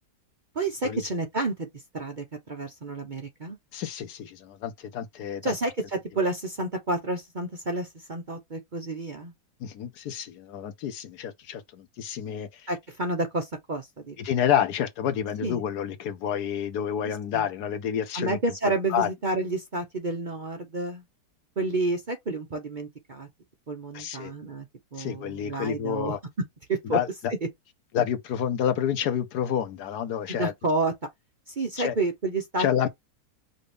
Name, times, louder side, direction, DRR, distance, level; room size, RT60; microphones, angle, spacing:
voice 1, 0.5-1.7 1.9-3.6 5.4-9.3 12.7-14.2 15.4-15.6 17.0-17.4 18.1-21.0 21.6-23.3 23.7-24.7 24.9-26.2 26.7-27.0 30.3-30.9 31.5-32.7, right 2 dB, 40° right, 0.7 m, -30 dB
voice 2, 3.7-5.5 9.6-12.6 14.2-18.4 18.9-19.1 23.9-24.3 25.0-26.2 26.8-27.1 27.9-30.5 31.8-32.0 32.6-32.9, left 9 dB, 75° left, 1.4 m, -29 dB
5.2 x 2.6 x 3.4 m
omnidirectional pair, 1.8 m